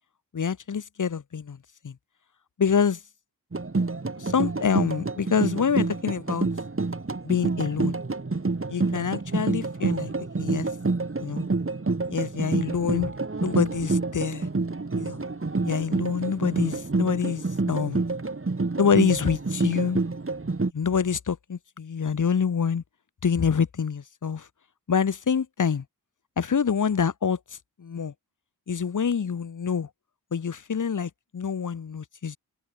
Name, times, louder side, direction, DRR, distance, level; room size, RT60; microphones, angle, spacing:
voice 1, 0.3-1.6 1.8-1.9 2.6-3.0 4.2-6.5 7.2-8.0 8.7-10.1 10.4-10.7 11.2-11.5 12.1-13.1 13.4-14.5 15.0-15.2 15.6-18.0 18.8-20.0 20.7-22.8 23.2-24.5 24.9-25.8 26.4-27.4 27.8-28.1 28.7-29.9 30.3-32.4, left 6 dB, 50° left, 1.2 m, -26 dB
sound 1, 3.5-20.7, right 3 dB, 35° right, 2.8 m, -28 dB
cardioid pair, 45°, 39 cm